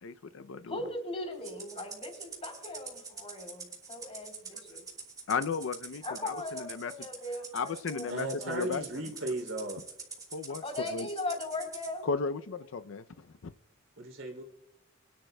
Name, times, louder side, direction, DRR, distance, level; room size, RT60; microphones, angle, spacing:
voice 1, 0.0-0.8 5.3-6.9 7.5-8.8 10.3-10.6 10.9-11.1 12.0-13.5, left 5 dB, 80° left, 0.5 m, -35 dB
voice 2, 0.7-4.8 6.0-8.0 8.4-8.6 10.6-12.1, left 2 dB, 30° left, 3.5 m, -39 dB
Rattle (instrument), 1.4-11.9, right 4 dB, 20° right, 2.6 m, -45 dB
voice 3, 8.1-9.8 14.0-14.4, right 2 dB, 75° right, 2.9 m, -36 dB
24.0 x 10.5 x 2.2 m
head